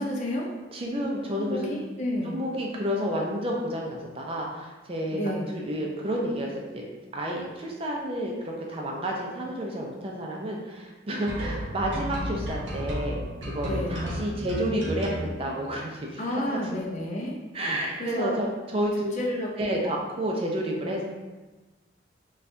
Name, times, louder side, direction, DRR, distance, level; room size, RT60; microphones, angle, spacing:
voice 1, 0.0-0.5 1.3-2.4 5.1-5.5 13.6-14.0 16.2-17.4 18.0-18.3 19.0-19.9, left 1 dB, 40° left, -1 dB, 0.5 m, -31 dB
voice 2, 0.7-1.7 2.2-6.8 7.1-13.2 13.5-16.6 17.5-19.1 19.6-21.0, equal, 30° right, -1 dB, 0.5 m, -30 dB
sound 1, 11.3-15.3, equal, 75° right, 0.9 m, -32 dB
4.2 x 2.3 x 2.6 m, 1.2 s
head